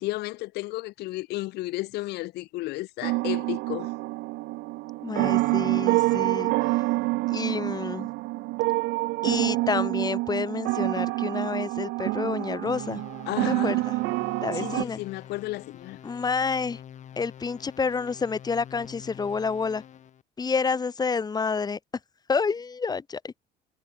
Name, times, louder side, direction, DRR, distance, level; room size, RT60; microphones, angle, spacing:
voice 1, 0.0-3.9 13.3-13.8 14.5-16.0, left 19 dB, 80° left, 0.6 m, -33 dB
sound 1, 3.0-14.8, right 22 dB, 85° right, 0.4 m, -27 dB
voice 2, 5.0-6.5 7.3-8.1 9.2-13.0 13.5-13.9 14.4-15.0 16.0-16.8 17.2-19.8 20.4-21.8 22.3-23.4, left 5 dB, 25° left, 0.7 m, -29 dB
sound 2, 12.7-20.2, left 9 dB, 45° left, 1.0 m, -46 dB
cardioid pair, 110°, 17 cm